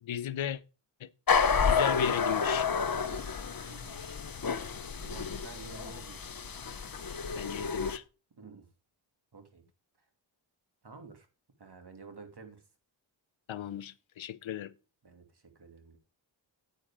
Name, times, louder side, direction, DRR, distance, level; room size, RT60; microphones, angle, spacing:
voice 1, 0.0-0.6 1.0-1.1 1.6-2.7 5.2-5.4 7.4-8.0 13.5-14.7, left 10 dB, 80° left, 0.7 m, -36 dB
sound 1, 1.3-8.0, left 5 dB, 50° left, 1.1 m, -30 dB
voice 2, 3.0-3.3 3.7-4.0 5.0-6.5 8.4-8.7 9.3-9.6 10.8-11.3 11.6-12.6 15.0-16.0, right 4 dB, 55° right, 2.7 m, -50 dB
9.7 x 8.8 x 3.7 m
cardioid pair, 45°, 47 cm